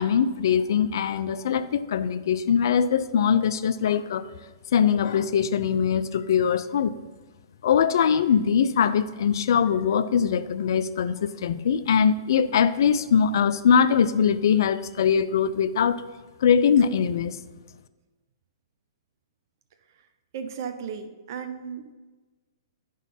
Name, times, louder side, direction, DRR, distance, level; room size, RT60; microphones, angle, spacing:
voice 1, 0.0-4.2 4.7-6.9 7.6-16.0 16.4-17.4, left 7 dB, 65° left, 14 dB, 0.4 m, -22 dB
voice 2, 20.3-21.9, right 7 dB, 55° right, 8 dB, 0.6 m, -35 dB
11.0 x 3.7 x 4.1 m, 1.2 s
hypercardioid pair, 135°, 2 cm